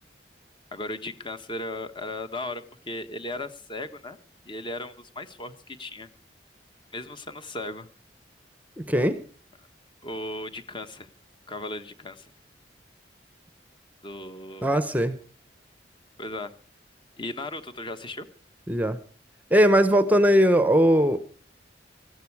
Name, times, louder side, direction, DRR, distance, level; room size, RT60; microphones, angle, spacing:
voice 1, 0.7-4.2 4.4-6.1 6.9-7.9 10.0-11.1 11.5-12.3 14.0-14.8 16.2-16.5 17.2-18.3, left 2 dB, 25° left, 10 dB, 1.2 m, -36 dB
voice 2, 8.9-9.2 14.6-15.2 18.7-19.0 19.5-21.2, equal, 10° right, 13 dB, 0.8 m, -19 dB
19.0 x 14.0 x 4.7 m, 0.41 s
head